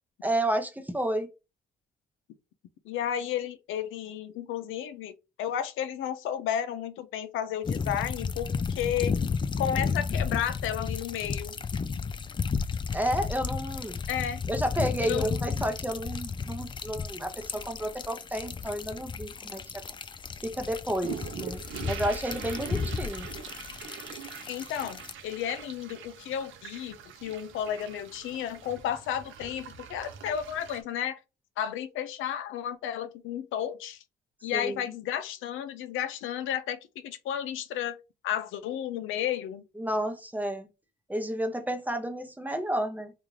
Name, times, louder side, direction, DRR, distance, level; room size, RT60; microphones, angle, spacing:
voice 1, 0.2-1.3 12.9-14.0 14.5-19.8 20.4-23.3 34.5-34.8 39.8-40.7 41.1-43.1, right 1 dB, 10° right, 0.7 m, -31 dB
voice 2, 2.8-9.2 9.6-11.5 14.1-14.4 15.0-15.3 24.5-31.2 31.6-34.0 34.4-38.0 38.2-39.6, left 10 dB, 85° left, 0.5 m, -32 dB
sound 1, 7.6-25.1, left 5 dB, 25° left, 0.3 m, -33 dB
sound 2, 21.0-30.8, right 8 dB, 85° right, 0.6 m, -43 dB
3.5 x 2.4 x 3.1 m
cardioid pair, 90°, 20 cm